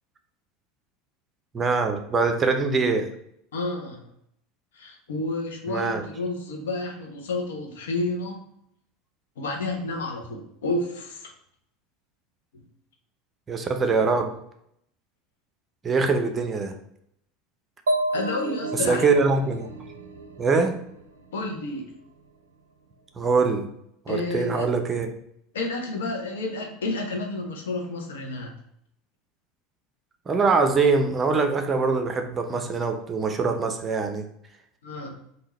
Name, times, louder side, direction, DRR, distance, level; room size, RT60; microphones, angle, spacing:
voice 1, 1.5-3.1 5.7-6.0 13.5-14.3 15.8-16.7 18.8-19.7 20.4-20.8 23.2-23.7 24.1-25.1 30.3-34.3, right 4 dB, 25° right, 6 dB, 0.7 m, -23 dB
voice 2, 3.5-4.0 4.7-8.4 9.4-11.3 18.1-19.0 21.3-21.9 24.1-24.7 25.5-28.5 34.8-35.2, left 2 dB, 75° left, 1 dB, 1.1 m, -30 dB
sound 1, 17.9-21.5, right 1 dB, 85° right, 0.4 m, -31 dB
3.8 x 2.8 x 4.4 m, 0.73 s
hypercardioid pair, 80°, 0 cm